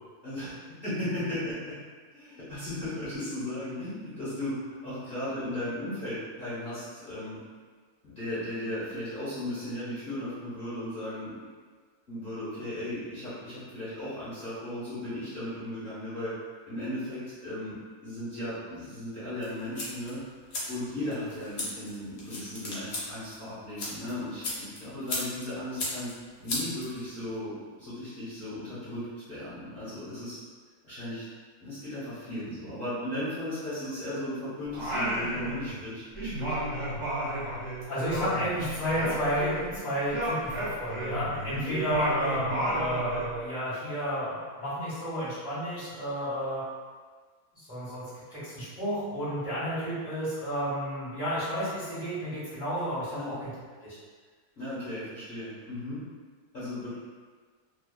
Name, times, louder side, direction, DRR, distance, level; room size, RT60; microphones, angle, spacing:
voice 1, 0.2-1.7 2.1-4.6 4.8-7.4 8.0-11.3 12.1-16.3 16.7-17.7 18.0-20.2 20.7-26.1 26.4-30.4 30.8-31.2 31.6-36.5 41.5-41.8 53.1-53.4 54.5-56.0 56.5-56.9, left 1 dB, 40° left, -14 dB, 1.0 m, -36 dB
sound 1, 19.4-27.4, left 2 dB, 65° left, 1.1 m, -38 dB
Singing, 34.7-35.9 36.1-39.8 40.1-43.3, right 1 dB, 45° right, 1.2 m, -32 dB
voice 2, 37.9-46.6 47.5-53.5 53.8-54.0, equal, 10° right, -14 dB, 0.9 m, -31 dB
2.8 x 2.3 x 2.2 m, 1.5 s
omnidirectional pair, 1.6 m